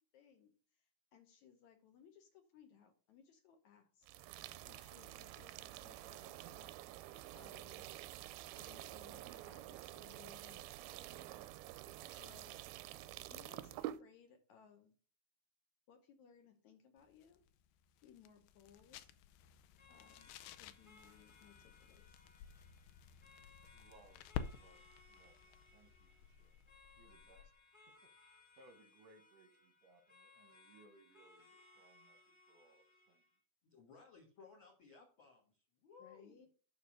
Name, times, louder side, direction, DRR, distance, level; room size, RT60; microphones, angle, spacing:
voice 1, 0.1-4.1 4.6-6.8 7.3-7.9 8.5-11.5 12.1-12.6 13.3-15.0 15.9-17.4 18.0-19.1 19.9-20.3 20.6-22.2 36.0-36.5, left 8 dB, 65° left, 2.0 m, -64 dB
sound 1, 4.0-14.0, right 14 dB, 90° right, 2.4 m, -49 dB
sound 2, 17.0-27.6, left 8 dB, 85° left, 2.5 m, -52 dB
sound 3, 19.8-33.4, left 3 dB, 15° left, 1.1 m, -66 dB
voice 2, 23.7-26.6 27.0-27.5 28.6-33.2, right 3 dB, 70° right, 1.6 m, -67 dB
voice 3, 33.6-36.4, left 5 dB, 50° left, 1.6 m, -60 dB
11.5 x 4.0 x 6.2 m
omnidirectional pair, 4.2 m